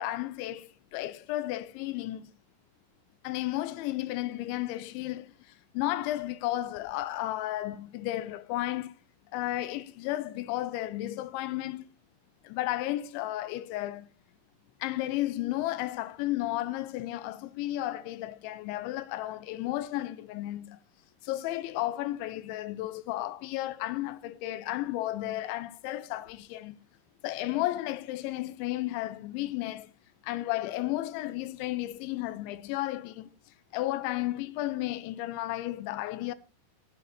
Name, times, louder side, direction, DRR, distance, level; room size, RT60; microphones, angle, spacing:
voice 1, 0.0-2.3 3.2-5.3 5.7-8.9 9.3-11.9 12.4-14.1 14.8-20.8 21.2-26.8 27.2-29.9 30.2-33.3 33.7-36.3, left 15 dB, 80° left, 3.0 m, -33 dB
16.5 x 8.7 x 4.2 m
omnidirectional pair, 5.4 m